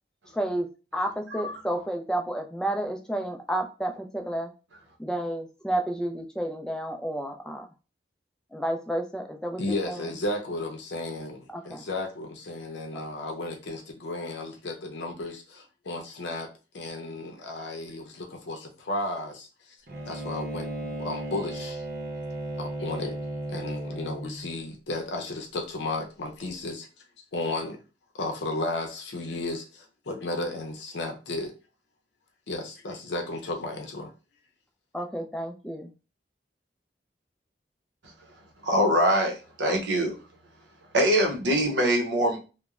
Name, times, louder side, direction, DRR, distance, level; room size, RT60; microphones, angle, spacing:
voice 1, 0.3-0.7 0.9-4.5 5.0-7.7 8.5-9.6 9.9-10.1 11.5-11.9 34.9-35.9, right 1 dB, 5° left, 0.3 m, -31 dB
voice 2, 9.6-16.5 16.7-19.5 20.1-21.8 22.6-23.2 23.5-26.9 27.3-27.8 28.1-31.5 32.5-34.1, left 2 dB, 80° left, 0.6 m, -34 dB
Bowed string instrument, 19.9-24.5, right 1 dB, 55° right, 0.7 m, -35 dB
voice 3, 38.6-40.2 40.9-42.4, equal, 90° right, 0.7 m, -23 dB
3.0 x 2.1 x 2.3 m
head